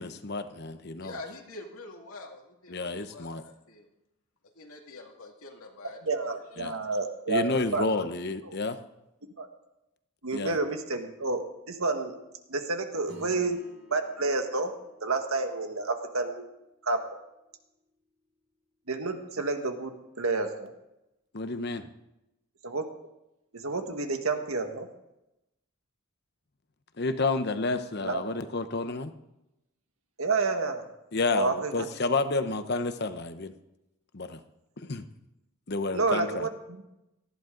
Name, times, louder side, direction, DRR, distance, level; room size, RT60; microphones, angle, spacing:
voice 1, 0.0-1.1 2.7-3.4 6.6-6.7 7.3-8.8 10.3-10.6 21.3-21.9 27.0-29.1 31.1-33.5 34.1-34.4 34.8-35.0 35.7-36.5, left 3 dB, 50° left, 10 dB, 0.9 m, -30 dB
voice 2, 1.0-3.9 4.6-6.0 6.3-6.4, left 2 dB, 80° left, 1 dB, 2.3 m, -45 dB
voice 3, 6.0-7.4 7.7-7.8 8.4-8.5 9.4-9.5 10.2-12.1 12.5-13.6 13.9-14.7 15.0-16.5 16.8-17.0 18.9-20.7 22.6-22.8 23.5-24.9 28.0-28.2 30.2-30.9 31.3-31.9 35.9-36.8, right 3 dB, 75° right, 5 dB, 1.7 m, -29 dB
Acoustic guitar / Strum, 13.1-17.9, equal, 50° right, 3.6 m, -53 dB
18.5 x 14.5 x 3.9 m, 0.91 s
head